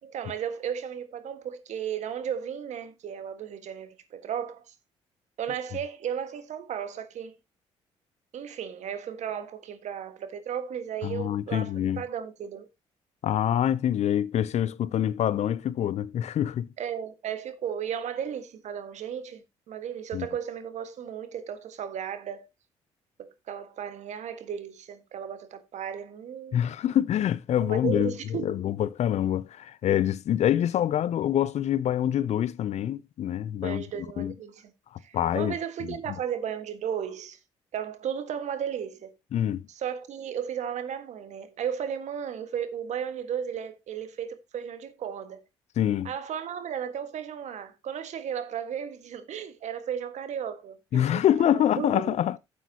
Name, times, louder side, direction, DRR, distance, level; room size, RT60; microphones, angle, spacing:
voice 1, 0.0-4.6 5.4-7.4 8.3-12.7 16.8-22.5 23.2-26.6 27.6-28.6 33.6-34.6 35.0-37.4 37.7-39.1 39.7-45.4 46.0-52.2, right 8 dB, 65° right, 1.6 m, -35 dB
voice 2, 11.0-12.0 13.2-16.7 20.1-20.3 26.5-33.8 34.2-34.3 34.9-35.5 35.8-36.0 39.3-39.6 45.8-46.1 50.9-52.4, left 11 dB, 60° left, 0.6 m, -26 dB
12.5 x 8.3 x 2.9 m
supercardioid pair, 55°, 13 cm